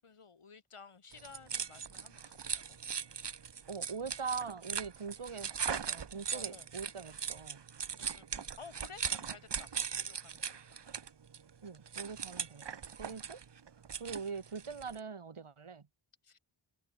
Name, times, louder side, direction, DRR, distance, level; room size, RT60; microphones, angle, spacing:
voice 1, 0.0-2.9 6.3-6.7 8.0-10.8 16.2-16.4, left 5 dB, 85° left, 7.0 m, -55 dB
sound 1, 1.1-15.0, right 7 dB, 55° right, 1.2 m, -40 dB
voice 2, 3.7-7.6 11.6-12.6 12.9-13.4 14.0-15.8, right 5 dB, 80° right, 5.0 m, -42 dB
wide cardioid pair, 85°, 50 cm